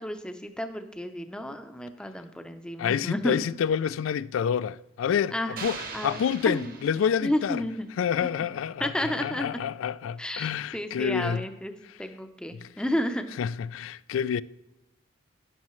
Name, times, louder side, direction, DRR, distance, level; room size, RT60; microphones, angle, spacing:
voice 1, 0.0-3.4 5.3-5.7 5.9-6.2 6.5-6.7 7.2-7.9 8.8-9.5 10.2-11.7 12.0-13.2, left 1 dB, 5° left, 0.6 m, -31 dB
voice 2, 2.8-7.6 8.0-11.5 11.8-12.0 12.5-12.7 13.4-14.4, left 8 dB, 80° left, 0.3 m, -28 dB
sound 1, 5.6-7.7, right 4 dB, 45° right, 1.0 m, -41 dB
13.0 x 10.5 x 3.1 m
head